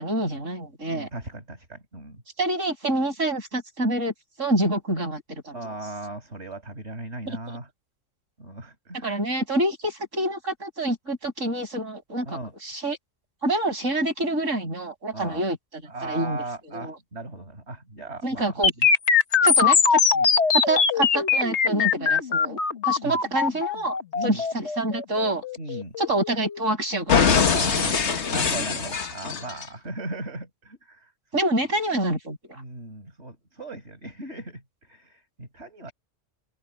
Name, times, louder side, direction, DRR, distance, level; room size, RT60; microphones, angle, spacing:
voice 1, 0.0-1.1 2.4-4.1 4.4-5.8 7.3-7.4 8.9-13.0 13.4-15.6 16.0-16.4 16.7-17.0 18.2-18.7 19.4-20.0 20.5-22.6 22.8-25.4 26.0-27.9 31.3-32.6, right 1 dB, 80° right, 7.5 m, -27 dB
voice 2, 0.9-2.2 5.5-7.7 8.4-9.2 12.3-12.5 15.1-15.4 15.9-18.9 20.1-20.3 23.0-23.2 24.1-24.4 25.6-25.9 27.5-31.1 32.6-34.6 34.9-35.9, right 2 dB, 60° right, 6.0 m, -37 dB
sound 1, 18.6-26.6 27.1-29.6, left 6 dB, 60° left, 1.6 m, -22 dB
open air
omnidirectional pair, 1.3 m